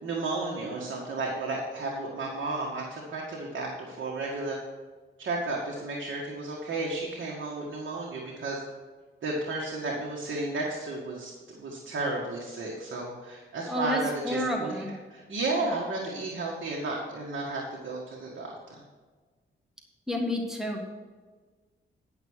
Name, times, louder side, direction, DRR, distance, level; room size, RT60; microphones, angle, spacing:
voice 1, 0.0-4.6 5.2-8.6 9.2-14.7 15.1-18.8, right 2 dB, 70° right, -3 dB, 1.8 m, -33 dB
voice 2, 13.7-14.9 20.1-20.8, left 1 dB, ahead, 0 dB, 1.7 m, -30 dB
10.5 x 6.1 x 6.4 m, 1.4 s
cardioid pair, 80°, 21 cm